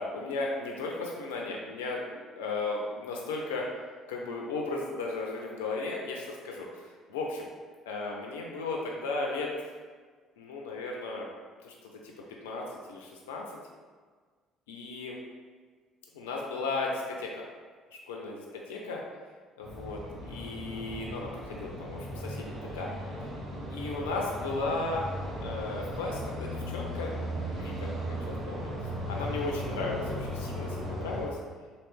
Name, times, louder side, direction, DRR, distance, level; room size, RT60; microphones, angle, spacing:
voice 1, 0.0-3.7 4.1-6.8 7.1-7.4 7.9-9.5 10.4-11.3 11.6-11.7 12.0-12.1 12.4-13.4 14.7-15.2 16.1-17.4 18.1-19.0 19.6-22.9 23.7-27.1 27.6-28.7 29.1-31.4, left 3 dB, 75° left, -1 dB, 0.4 m, -35 dB
sound 1, 19.6-31.3, equal, 50° right, 0.9 m, -37 dB
3.1 x 2.6 x 3.2 m, 1.5 s
figure-of-eight pair, 55°, 0 cm